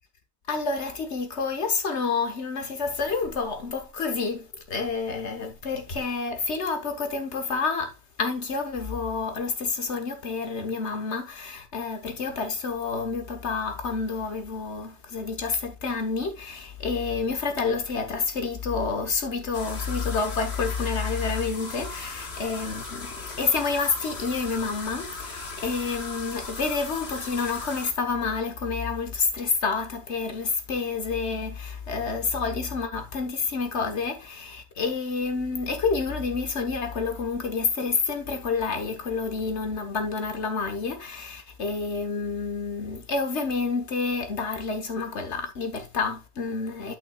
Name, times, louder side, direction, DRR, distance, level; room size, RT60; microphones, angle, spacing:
voice 1, 0.5-46.9, left 4 dB, 90° left, 1.6 m, -29 dB
sound 1, 19.5-27.9, left 3 dB, 65° left, 1.7 m, -38 dB
12.0 x 5.8 x 2.4 m
omnidirectional pair, 1.1 m